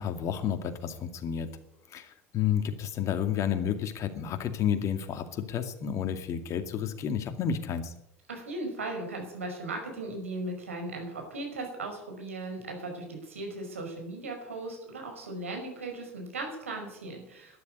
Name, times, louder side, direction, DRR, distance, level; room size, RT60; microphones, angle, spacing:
voice 1, 0.0-1.5 1.9-7.9, left 8 dB, 45° left, 8 dB, 2.3 m, -31 dB
voice 2, 8.3-17.6, right 2 dB, 85° right, 2 dB, 5.2 m, -37 dB
12.5 x 11.0 x 9.5 m, 0.80 s
hypercardioid pair, 70°, 7 cm